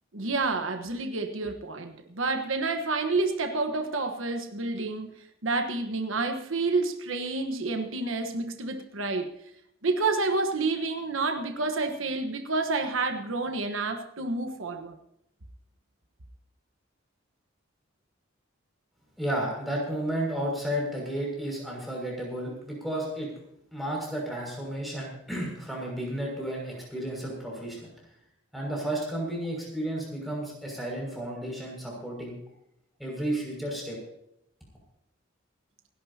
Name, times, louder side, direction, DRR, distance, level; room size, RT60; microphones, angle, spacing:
voice 1, 0.1-5.1 5.4-9.3 9.8-15.0, right 3 dB, 80° right, 5 dB, 1.3 m, -29 dB
voice 2, 19.2-23.3 23.7-27.9 28.5-32.4 33.0-34.0, right 1 dB, ahead, -3 dB, 6.2 m, -32 dB
27.0 x 12.0 x 2.9 m, 0.78 s
head